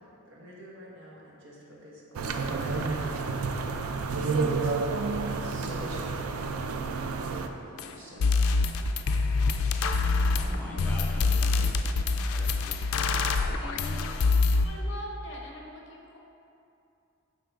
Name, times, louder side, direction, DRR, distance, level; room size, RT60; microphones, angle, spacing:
voice 1, 0.2-4.9 5.4-6.4 7.3-8.5, equal, 60° right, -4 dB, 1.3 m, -46 dB
sound 1, 2.1-7.5, right 4 dB, 90° right, 0.4 m, -30 dB
sound 2, 7.8-7.9 8.2-14.6, left 3 dB, 85° left, 0.4 m, -25 dB
voice 2, 10.3-13.2 13.5-14.1, equal, 10° left, -4 dB, 0.7 m, -44 dB
voice 3, 13.6-14.0 14.6-16.2, equal, 55° left, -1 dB, 0.9 m, -42 dB
7.6 x 4.9 x 3.5 m, 2.6 s
head